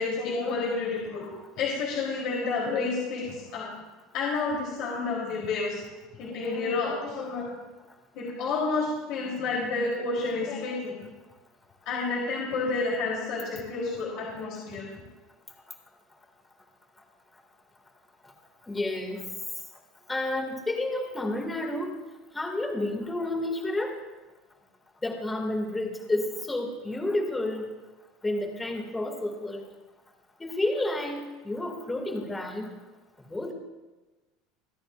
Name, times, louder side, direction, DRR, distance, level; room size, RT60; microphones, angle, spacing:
voice 1, 0.0-3.7 4.1-5.8 6.1-7.5 8.1-10.9 11.9-14.8, left 3 dB, 60° left, -4 dB, 3.8 m, -30 dB
voice 2, 18.7-19.2 20.1-22.0 22.3-23.9 25.0-27.7 28.2-29.7 30.4-31.2 31.4-32.7 33.3-33.5, left 1 dB, 15° left, 2 dB, 2.5 m, -30 dB
27.5 x 9.6 x 2.6 m, 1.2 s
supercardioid pair, 100°, 0 cm